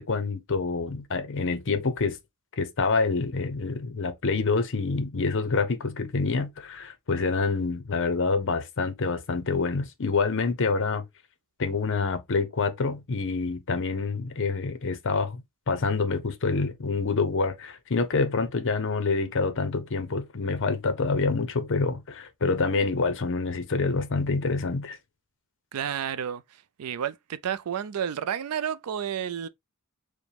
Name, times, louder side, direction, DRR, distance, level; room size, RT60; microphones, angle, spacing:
voice 1, 0.0-2.2 2.6-11.0 11.6-25.0, left 4 dB, 60° left, 0.7 m, -27 dB
voice 2, 25.7-26.4 26.8-29.5, right 8 dB, 85° right, 0.4 m, -31 dB
4.9 x 2.1 x 3.3 m
head